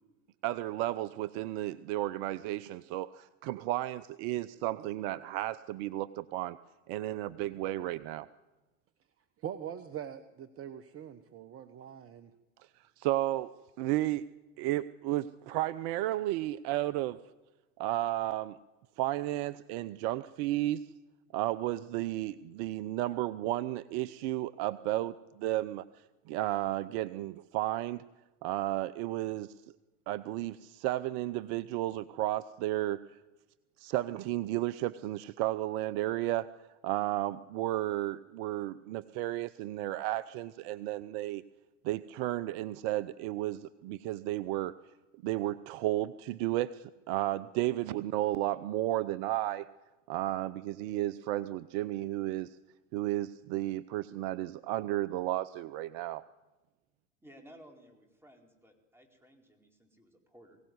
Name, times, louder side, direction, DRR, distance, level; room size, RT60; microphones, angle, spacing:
voice 1, 0.4-6.6 6.9-8.3 13.0-13.5 13.8-14.3 14.6-17.2 17.8-18.6 19.0-20.8 21.3-25.8 26.3-28.0 28.4-29.5 30.1-33.2 33.8-36.5 36.8-41.4 41.8-44.7 45.2-49.7 50.1-52.6 52.9-56.2, right 15 dB, 55° right, 16 dB, 0.7 m, -33 dB
voice 2, 9.4-12.3, right 9 dB, 35° right, 11 dB, 1.1 m, -43 dB
voice 3, 57.2-60.6, equal, 5° right, 2 dB, 4.5 m, -57 dB
23.0 x 17.0 x 9.5 m, 1.1 s
hypercardioid pair, 90°, 39 cm